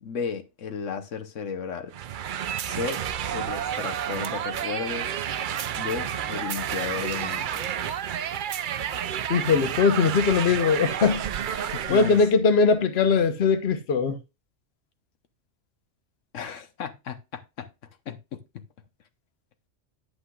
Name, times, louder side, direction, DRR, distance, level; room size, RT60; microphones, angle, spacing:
voice 1, 0.0-1.9 2.6-3.0 3.3-5.1 5.8-7.7 11.7-12.2 16.3-17.7 18.1-18.4, left 6 dB, 85° left, 1.3 m, -34 dB
sound 1, 1.9-12.3, right 9 dB, 60° right, 0.5 m, -30 dB
voice 2, 9.3-11.2 11.9-14.2, left 5 dB, 60° left, 1.1 m, -21 dB
9.8 x 8.6 x 2.3 m
omnidirectional pair, 1.3 m